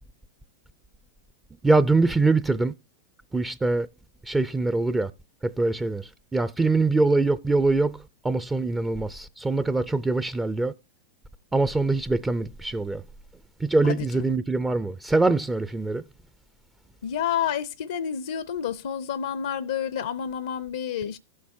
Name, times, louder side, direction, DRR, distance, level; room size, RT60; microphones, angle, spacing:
voice 1, 1.6-2.7 3.3-3.9 4.3-5.1 5.4-8.0 8.2-10.7 11.5-13.0 13.6-16.0, right 3 dB, 10° right, 0.4 m, -23 dB
voice 2, 13.8-14.4 17.0-21.2, left 8 dB, 75° left, 0.5 m, -29 dB
15.5 x 6.5 x 2.6 m
hypercardioid pair, 100°, 0 cm